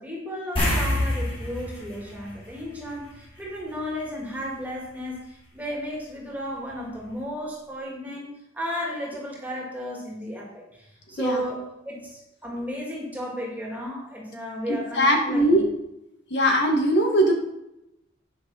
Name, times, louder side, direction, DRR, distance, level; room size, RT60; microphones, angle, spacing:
voice 1, 0.0-8.3 8.5-15.6, equal, 10° right, -3 dB, 2.4 m, -34 dB
sound 1, 0.6-3.3 3.6-3.8 6.7-6.8 7.1-7.2, left 1 dB, 30° left, 3.2 m, -27 dB
voice 2, 14.7-15.6 16.3-17.3, equal, 60° left, 2 dB, 1.8 m, -20 dB
10.0 x 6.1 x 5.7 m, 0.85 s
head